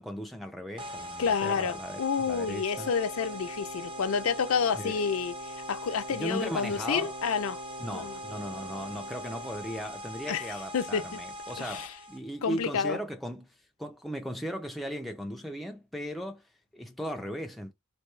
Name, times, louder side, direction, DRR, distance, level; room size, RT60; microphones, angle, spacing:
voice 1, 0.0-2.9 4.7-5.0 6.1-7.1 7.8-17.7, equal, ahead, 0.3 m, -37 dB
sound 1, 0.8-12.2, equal, 25° right, 0.7 m, -42 dB
voice 2, 1.2-5.3 5.7-7.6 7.9-8.2 10.3-10.5 10.7-11.2 11.6-11.9 12.4-13.0, left 6 dB, 75° left, 0.5 m, -29 dB
Wind instrument woodwind instrument, 2.7-10.0, right 2 dB, 60° right, 0.6 m, -45 dB
3.5 x 2.7 x 3.1 m
head